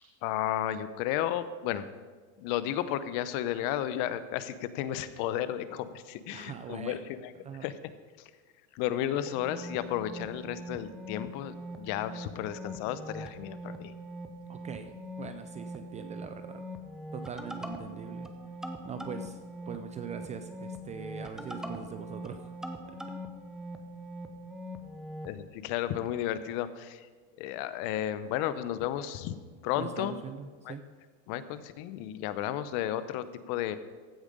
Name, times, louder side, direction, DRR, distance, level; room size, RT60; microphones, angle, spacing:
voice 1, 0.2-1.9 2.4-7.3 7.6-7.8 8.7-13.9 25.2-27.1 27.4-29.4 29.6-30.1 30.6-30.8 31.3-33.8, left 11 dB, 55° left, 14 dB, 0.8 m, -33 dB
voice 2, 6.3-7.0 7.4-7.6 14.5-14.9 15.2-16.6 17.1-18.3 18.8-19.4 19.7-22.4 29.7-30.8, right 7 dB, 20° right, 9 dB, 0.3 m, -41 dB
sound 1, 9.3-25.4, equal, ahead, 0.7 m, -42 dB
15.0 x 5.1 x 5.2 m, 1.4 s
supercardioid pair, 125°, 37 cm